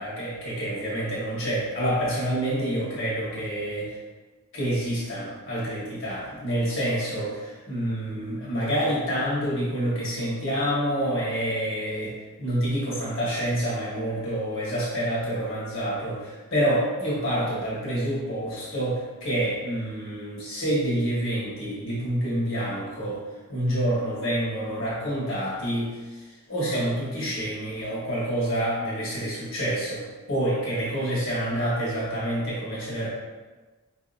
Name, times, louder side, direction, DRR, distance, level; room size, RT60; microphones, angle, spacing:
voice 1, 0.0-4.0 4.5-12.1 12.4-23.2 23.5-26.2 26.5-33.1, right 1 dB, 55° left, -7 dB, 1.2 m, -27 dB
4.4 x 2.7 x 2.4 m, 1.3 s
head